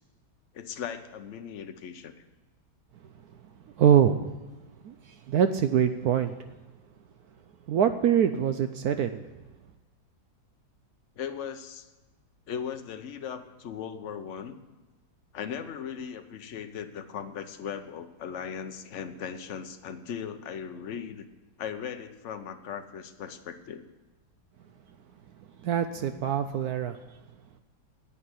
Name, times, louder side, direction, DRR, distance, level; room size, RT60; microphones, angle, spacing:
voice 1, 0.5-2.1 11.2-11.9 12.5-14.6 15.3-21.2 21.6-23.8, left 7 dB, 55° left, 8 dB, 0.8 m, -38 dB
voice 2, 3.8-4.3 4.8-6.3 7.7-9.3 25.6-27.0, right 8 dB, 75° right, 9 dB, 0.8 m, -24 dB
10.5 x 8.6 x 9.6 m, 1.2 s
omnidirectional pair, 2.2 m